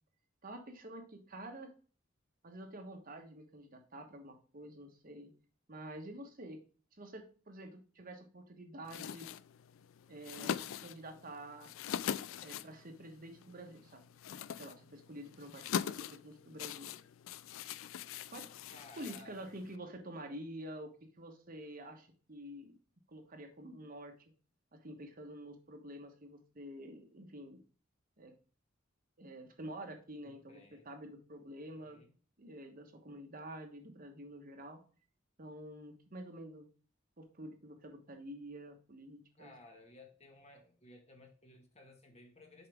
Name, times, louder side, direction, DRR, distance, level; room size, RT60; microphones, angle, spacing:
voice 1, 0.4-1.7 2.4-5.3 5.7-6.6 7.0-9.3 10.1-11.7 12.4-14.0 14.6-16.9 18.3-18.5 19.0-22.7 23.1-24.1 24.7-27.6 28.2-28.3 29.2-32.0 32.4-34.8 35.4-36.7 37.2-39.5, right 1 dB, 45° right, 5 dB, 1.2 m, -48 dB
sound 1, 8.8-19.8, left 8 dB, 85° left, 0.4 m, -43 dB
voice 2, 18.7-19.4 30.2-30.9 31.7-32.1 39.4-42.7, left 2 dB, 35° left, 3 dB, 1.4 m, -57 dB
6.9 x 4.9 x 3.5 m, 0.39 s
head